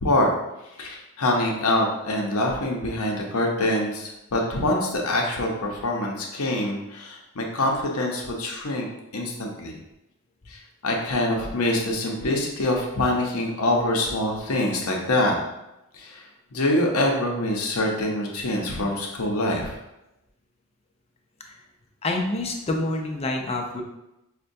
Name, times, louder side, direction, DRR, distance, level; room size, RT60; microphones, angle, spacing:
voice 1, 0.8-8.9 9.1-9.8 10.5-15.4 15.9-16.3 16.5-19.7, left 1 dB, 75° left, 0 dB, 0.7 m, -25 dB
voice 2, 22.0-23.8, left 2 dB, 30° left, 2 dB, 0.4 m, -27 dB
5.4 x 2.2 x 2.6 m, 0.92 s
head